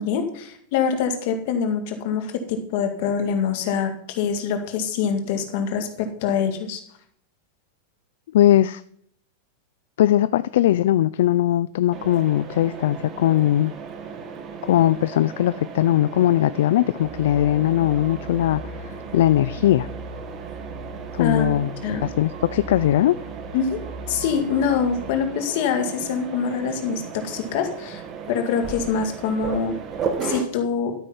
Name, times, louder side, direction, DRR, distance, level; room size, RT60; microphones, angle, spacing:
voice 1, 0.0-6.8 21.2-22.1 23.5-23.8 24.1-29.7 30.2-30.9, left 6 dB, 45° left, 6 dB, 1.9 m, -25 dB
voice 2, 8.3-8.8 10.0-13.7 14.6-19.9 21.1-23.2, left 13 dB, 60° left, 16 dB, 0.4 m, -20 dB
Mechanisms, 11.9-30.4, right 6 dB, 20° right, 1.3 m, -36 dB
sound 1, 17.0-25.2, right 2 dB, 60° right, 2.3 m, -39 dB
12.0 x 8.8 x 5.6 m, 0.66 s
supercardioid pair, 180°, 0 cm